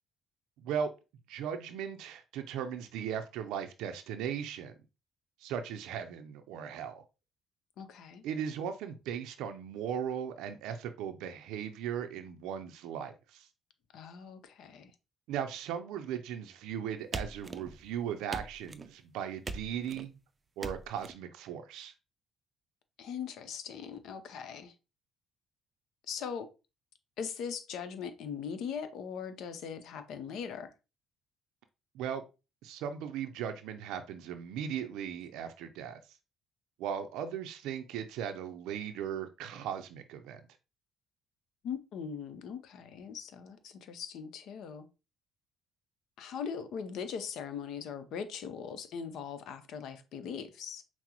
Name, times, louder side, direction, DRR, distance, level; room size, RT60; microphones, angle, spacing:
voice 1, 0.6-0.9 1.3-4.8 5.4-7.0 8.2-13.5 15.3-20.2 20.6-21.9 31.9-32.2 32.6-36.0 36.8-40.4, right 8 dB, 85° right, 0.4 m, -37 dB
voice 2, 7.8-8.2 13.9-14.9 23.0-24.7 26.1-26.5 27.2-30.7 41.6-44.9 46.2-50.8, left 7 dB, 70° left, 0.7 m, -40 dB
sound 1, 17.1-17.9 18.3-18.9 19.4-20.1 20.6-21.1, right 3 dB, 25° right, 0.4 m, -41 dB
5.8 x 2.0 x 2.9 m
cardioid pair, 90°, 0 cm